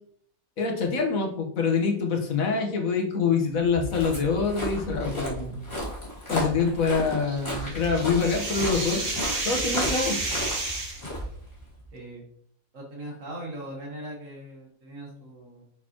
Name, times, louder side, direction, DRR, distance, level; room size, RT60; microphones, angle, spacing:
voice 1, 0.6-5.6 6.3-9.0 9.4-10.2, left 5 dB, 70° left, 2 dB, 1.6 m, -25 dB
Walk footsteps, 3.6-11.9, left 1 dB, 20° left, 2.6 m, -34 dB
sound 1, 7.2-11.1, right 2 dB, 85° right, 2.2 m, -31 dB
voice 2, 11.9-12.2 12.7-15.6, right 1 dB, 60° right, -1 dB, 1.7 m, -40 dB
6.3 x 6.0 x 3.0 m, 0.63 s
omnidirectional pair, 1.5 m